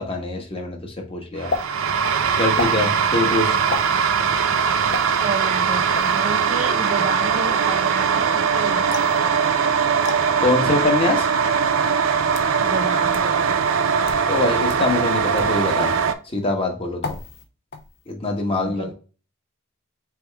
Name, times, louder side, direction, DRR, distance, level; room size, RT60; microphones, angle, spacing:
voice 1, 0.0-1.5 2.4-3.6 10.4-11.3 14.3-15.9 16.3-17.2 18.1-18.9, left 2 dB, 25° left, 1.3 m, -23 dB
sound 1, 1.4-16.1, right 6 dB, 85° right, 0.5 m, -21 dB
sound 2, 1.5-1.6 2.5-2.8 3.7-3.9 4.9-5.1 5.9-6.2 8.9-9.2 10.0-10.2 11.1-11.2 12.1-12.5 13.1-13.2 13.9-14.2 14.7-14.8 15.4-15.5 17.0-17.4 17.7-18.1, left 3 dB, 55° left, 0.8 m, -30 dB
voice 2, 2.6-3.3 5.2-9.4 12.6-13.7 18.5-18.9, right 4 dB, 35° right, 0.4 m, -31 dB
4.5 x 3.5 x 3.3 m
head